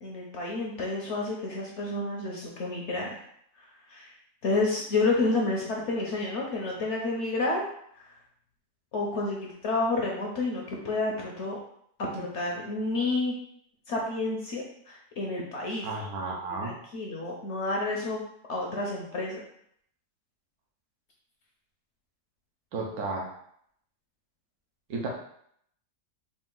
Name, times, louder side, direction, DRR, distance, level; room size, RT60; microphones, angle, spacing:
voice 1, 0.0-3.2 3.9-4.1 4.4-7.6 8.0-8.1 8.9-11.6 12.0-13.3 13.9-15.9 16.5-18.2 18.5-19.4, left 2 dB, 55° left, -2 dB, 0.8 m, -30 dB
voice 2, 15.8-16.7 22.7-23.3 24.9-25.1, right 3 dB, 70° right, -1 dB, 1.4 m, -33 dB
4.3 x 2.5 x 3.7 m, 0.68 s
omnidirectional pair, 1.7 m